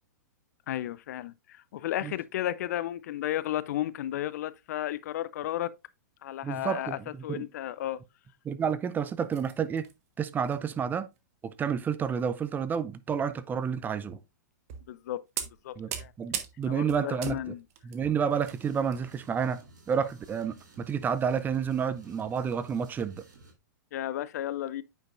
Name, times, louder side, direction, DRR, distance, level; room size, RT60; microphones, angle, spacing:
voice 1, 0.7-5.7 6.2-8.0 14.9-15.2 15.6-16.1 16.6-17.6 23.9-24.8, left 13 dB, 60° left, 0.5 m, -33 dB
voice 2, 6.4-7.5 8.4-9.9 10.2-11.1 11.4-14.2 15.8-17.5 17.8-23.2, right 7 dB, 20° right, 0.5 m, -30 dB
sound 1, 9.2-9.9 10.4-10.5 10.9-11.2 12.2-12.5 13.1-13.3 14.1-14.2 14.7-15.0 15.4-19.0 19.3-19.5 20.1-20.2, right 9 dB, 55° right, 1.2 m, -39 dB
sound 2, 18.3-23.5, right 2 dB, 85° right, 3.1 m, -55 dB
9.0 x 5.1 x 2.5 m
hypercardioid pair, 115°, 10 cm